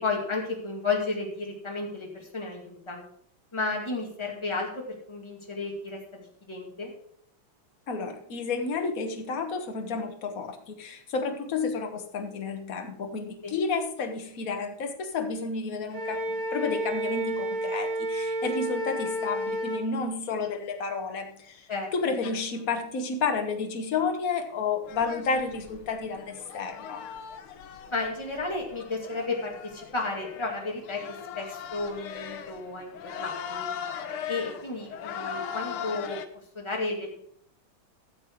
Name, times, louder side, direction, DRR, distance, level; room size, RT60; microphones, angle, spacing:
voice 1, 0.0-3.0 3.5-6.9 13.4-13.5 21.7-21.9 27.9-31.0 31.3-33.7 34.3-36.2 36.5-37.2, left 3 dB, 15° left, 0 dB, 2.3 m, -33 dB
voice 2, 7.9-21.7 21.9-27.0, left 4 dB, 45° left, 5 dB, 1.6 m, -31 dB
Wind instrument woodwind instrument, 15.9-19.8, right 1 dB, 65° right, 4.5 m, -30 dB
sound 1, 24.9-36.3, left 8 dB, 75° left, 1.7 m, -39 dB
13.5 x 7.6 x 4.7 m, 0.67 s
omnidirectional pair, 2.4 m